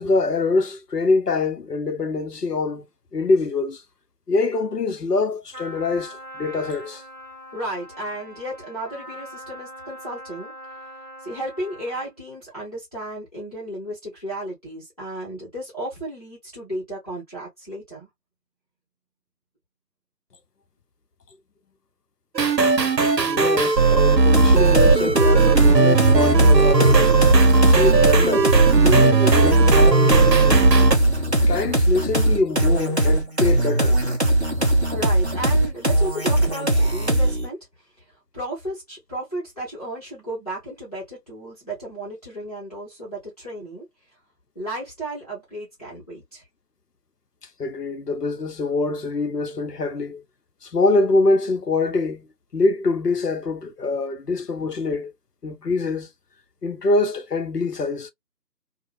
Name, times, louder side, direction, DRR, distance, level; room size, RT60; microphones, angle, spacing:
voice 1, 0.0-2.9 3.1-3.8 4.3-7.0 23.3-27.2 27.5-28.5 28.8-30.7 31.4-34.0 47.6-50.2 50.6-52.3 52.5-55.1 55.4-56.1 56.6-58.1, left 3 dB, 70° left, 0.8 m, -24 dB
Trumpet, 5.5-12.2, equal, 25° right, 1.3 m, -41 dB
voice 2, 7.5-10.5 11.2-18.1 34.9-37.6 38.3-43.9 44.5-46.4, right 1 dB, 25° left, 1.0 m, -33 dB
sound 1, 22.4-31.0, right 4 dB, 80° right, 0.8 m, -17 dB
sound 2, 24.3-37.5, right 1 dB, 45° right, 0.6 m, -20 dB
2.6 x 2.3 x 3.0 m
figure-of-eight pair, 160°, 49 cm